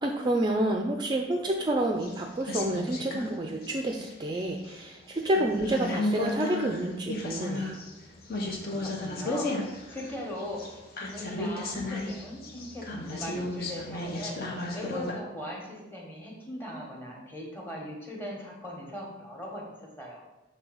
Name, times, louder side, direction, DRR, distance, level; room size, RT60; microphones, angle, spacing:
voice 1, 0.0-7.8, right 1 dB, 25° right, 3 dB, 0.4 m, -29 dB
sound 1, 2.0-3.3 3.6-4.8 5.2-15.1, left 2 dB, 55° left, 1.0 m, -34 dB
voice 2, 8.4-14.4 14.7-19.7 20.0-20.2, equal, 10° left, -2 dB, 1.3 m, -39 dB
6.2 x 3.3 x 5.3 m, 1.0 s
head